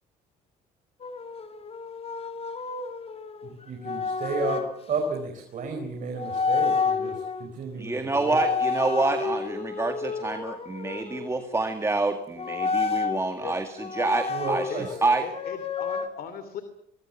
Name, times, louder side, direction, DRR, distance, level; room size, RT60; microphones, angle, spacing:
sound 1, 1.0-4.7 5.7-5.9 6.2-7.5 8.1-11.5 12.4-13.2 13.8-16.1, left 5 dB, 35° left, 2.5 m, -30 dB
voice 1, 3.4-8.5 14.3-14.9, right 3 dB, 50° right, 4 dB, 4.3 m, -32 dB
voice 2, 7.8-15.2, right 3 dB, 15° right, 7 dB, 2.0 m, -27 dB
voice 3, 15.2-16.6, left 8 dB, 65° left, 10 dB, 2.8 m, -38 dB
24.0 x 23.5 x 7.2 m, 0.73 s
cardioid pair, 110°, 17 cm